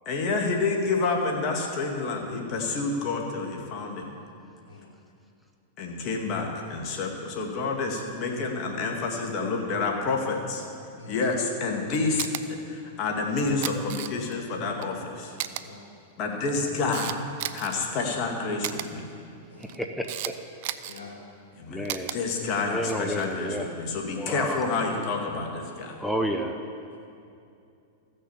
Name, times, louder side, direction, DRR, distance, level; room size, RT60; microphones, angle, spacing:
voice 1, 0.1-4.1 5.8-10.7 11.1-15.3 16.2-17.2 17.5-19.1 21.6-26.0, left 3 dB, 45° left, 1 dB, 1.9 m, -29 dB
Camera, 12.2-12.4 13.4-14.4 14.8-14.9 15.4-15.6 16.3-17.7 18.6-18.9 19.6-20.3 20.6-21.0 21.8-22.2 23.0-23.3, right 14 dB, 60° right, 0.5 m, -33 dB
voice 2, 19.6-20.4 21.7-22.2 22.7-23.7 24.2-24.7 26.0-26.6, equal, 5° left, 3 dB, 0.8 m, -31 dB
voice 3, 20.9-21.2 26.9-27.0, left 4 dB, 85° left, -1 dB, 2.5 m, -45 dB
15.0 x 6.4 x 7.1 m, 2.5 s
hypercardioid pair, 115°, 0 cm